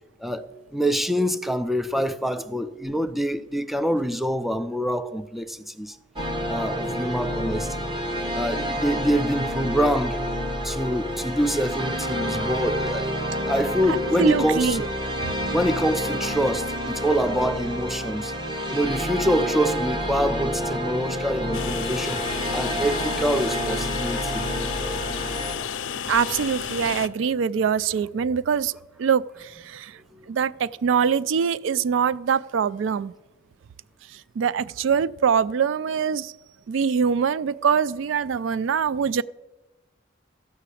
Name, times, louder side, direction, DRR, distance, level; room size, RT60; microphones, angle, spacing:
voice 1, 0.2-6.0 6.5-7.9 8.3-10.2 10.6-13.1 13.5-14.9 15.5-18.3 18.7-22.3 22.5-24.5 30.2-30.3, equal, ahead, 0.4 m, -25 dB
sound 1, 6.2-25.6, equal, 25° right, 1.3 m, -29 dB
voice 2, 13.9-14.9 26.1-29.9 30.3-33.1 34.4-36.3 36.7-39.2, right 6 dB, 80° right, 0.3 m, -23 dB
Train, 21.5-27.1, left 8 dB, 80° left, 0.5 m, -32 dB
13.0 x 5.8 x 8.4 m
head